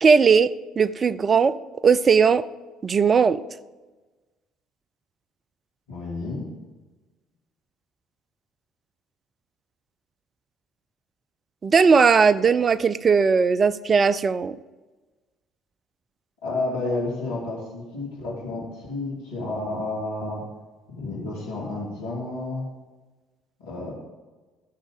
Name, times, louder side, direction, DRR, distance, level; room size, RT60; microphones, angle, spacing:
voice 1, 0.0-1.6 1.8-2.4 2.8-3.4 11.6-14.6, right 5 dB, 35° right, 16 dB, 0.4 m, -18 dB
voice 2, 5.9-6.5 16.4-20.4 20.9-22.7 23.6-23.9, left 2 dB, 75° left, -5 dB, 2.9 m, -30 dB
13.5 x 5.2 x 5.2 m, 1.2 s
figure-of-eight pair, 55°, 0 cm